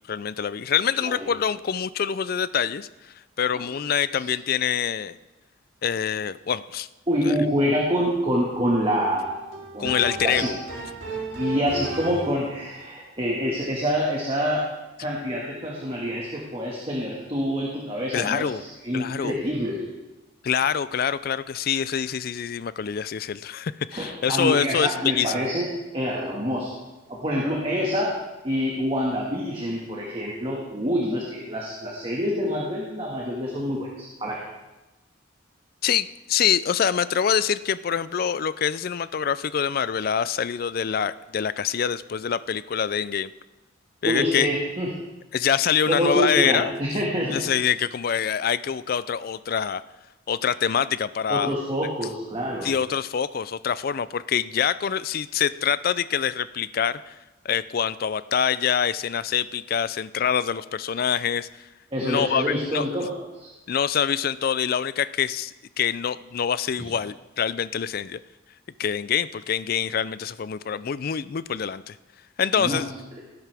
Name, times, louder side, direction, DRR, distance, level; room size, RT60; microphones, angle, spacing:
voice 1, 0.1-5.1 5.8-6.9 7.2-7.4 9.8-10.5 18.1-18.6 18.9-19.4 20.4-25.5 35.8-43.3 44.0-44.5 45.3-46.7 47.3-49.8 50.3-51.5 52.6-57.2 57.4-61.7 62.0-62.8 63.7-68.2 68.8-72.0 72.4-72.9, left 8 dB, 50° left, 16 dB, 0.4 m, -25 dB
voice 2, 7.1-9.2 9.7-10.5 11.3-14.6 15.0-19.9 23.9-24.0 24.3-26.7 27.1-28.2 28.4-34.4 44.0-44.9 45.9-47.5 51.3-52.7 61.9-63.5 66.8-66.9 72.6-72.8, equal, 30° right, -3 dB, 1.8 m, -26 dB
sound 1, 9.2-12.5, right 3 dB, 75° right, 3.1 m, -34 dB
18.0 x 11.0 x 3.5 m, 1.1 s
head